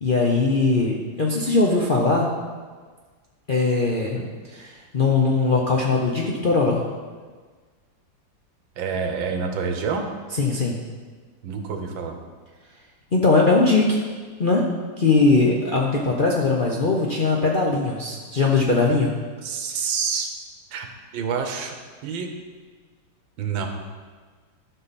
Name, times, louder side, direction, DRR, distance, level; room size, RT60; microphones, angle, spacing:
voice 1, 0.0-2.3 3.5-6.8 10.4-10.8 13.1-14.0 14.4-14.7 15.0-19.1, left 3 dB, 50° left, -3 dB, 0.6 m, -20 dB
voice 2, 8.8-10.0 11.4-12.2 19.4-20.3 20.7-20.9 21.1-21.8 22.0-22.3 23.4-23.7, right 6 dB, 85° right, 5 dB, 1.7 m, -27 dB
12.0 x 5.8 x 4.2 m, 1.5 s
omnidirectional pair, 2.1 m